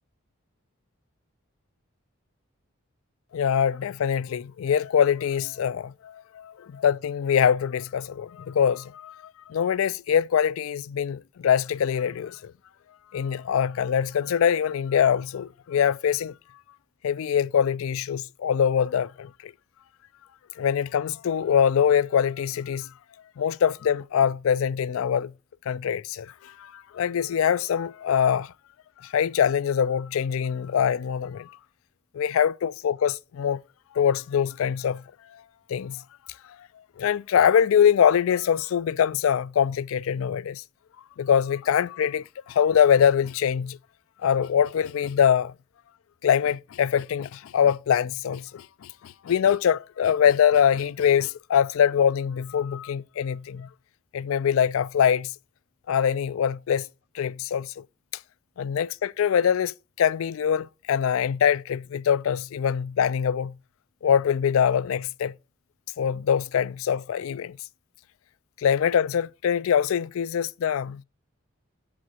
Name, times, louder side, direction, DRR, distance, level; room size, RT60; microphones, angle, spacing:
voice 1, 3.3-9.2 9.5-12.5 13.1-16.3 17.0-19.5 20.6-22.9 23.4-25.3 25.7-28.5 29.0-31.5 32.1-33.6 33.9-35.0 35.7-36.0 37.0-40.6 41.2-43.8 44.2-45.5 46.2-53.7 54.1-55.3 55.9-56.9 57.1-57.7 58.6-63.5 64.0-65.3 66.0-67.6 68.6-71.0, left 8 dB, 75° left, 0.3 m, -23 dB
7.5 x 7.1 x 2.8 m
head